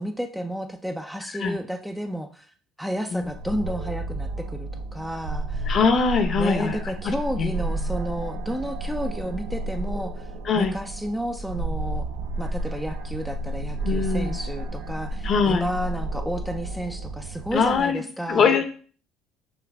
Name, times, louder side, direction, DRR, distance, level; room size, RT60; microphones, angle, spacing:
voice 1, 0.0-2.5 2.8-5.8 6.4-10.3 10.5-12.1 12.4-18.6, equal, ahead, 5 dB, 0.4 m, -31 dB
sound 1, 3.2-17.8, right 2 dB, 80° right, 0.5 m, -31 dB
voice 2, 5.7-6.8 7.0-7.5 10.5-10.7 13.8-14.4 15.2-15.7 17.5-18.0 18.3-18.6, left 5 dB, 45° left, 8 dB, 0.7 m, -22 dB
5.7 x 2.5 x 3.3 m, 0.43 s
cardioid pair, 110°, 0 cm